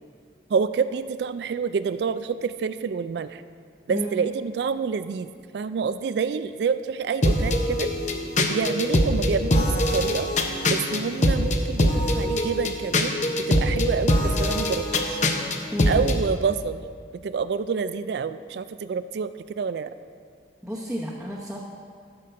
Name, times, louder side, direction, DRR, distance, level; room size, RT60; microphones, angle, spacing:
voice 1, 0.5-3.4 3.9-5.3 5.5-7.9 8.4-10.3 10.7-13.2 13.5-15.2 15.9-16.8 17.2-19.3 19.6-19.9, right 5 dB, 65° right, 12 dB, 0.3 m, -27 dB
sound 1, 7.2-16.2, left 1 dB, 40° left, 0.8 m, -23 dB
voice 2, 20.6-21.6, equal, 5° right, -6 dB, 0.9 m, -31 dB
13.0 x 6.7 x 5.6 m, 2.1 s
head